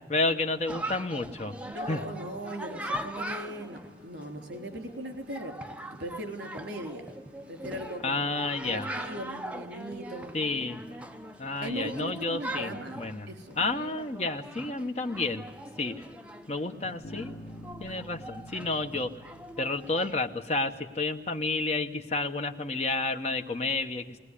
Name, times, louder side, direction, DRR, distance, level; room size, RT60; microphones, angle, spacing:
voice 1, 0.1-1.5 1.9-2.0 8.0-8.9 10.3-10.8 11.4-13.3 13.6-15.4 15.8-16.1 16.5-17.5 17.8-19.1 19.6-24.2, left 3 dB, 35° left, 5 dB, 1.0 m, -30 dB
Chatter, 0.7-20.3, right 1 dB, 5° right, 0.6 m, -41 dB
voice 2, 1.6-7.0 7.5-10.4 11.6-13.6, right 1 dB, 75° right, 5 dB, 3.5 m, -39 dB
sound 1, 1.7-17.7, left 4 dB, 50° right, 5.8 m, -56 dB
Bass guitar, 17.0-20.7, left 1 dB, 75° left, 1.2 m, -47 dB
20.0 x 18.5 x 9.9 m, 1.5 s
head